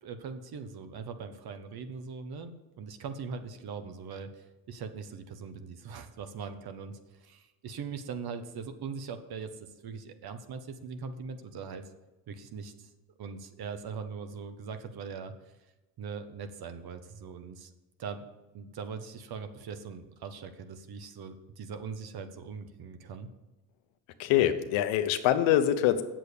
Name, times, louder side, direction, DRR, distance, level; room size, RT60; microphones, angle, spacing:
voice 1, 0.0-11.8 12.3-12.9 13.2-15.3 16.0-17.7 18.0-18.3 18.5-23.3, right 5 dB, 55° right, 8 dB, 1.3 m, -41 dB
voice 2, 24.2-26.0, left 11 dB, 80° left, 9 dB, 1.0 m, -24 dB
8.2 x 7.5 x 6.9 m, 1.1 s
supercardioid pair, 90°, 46 cm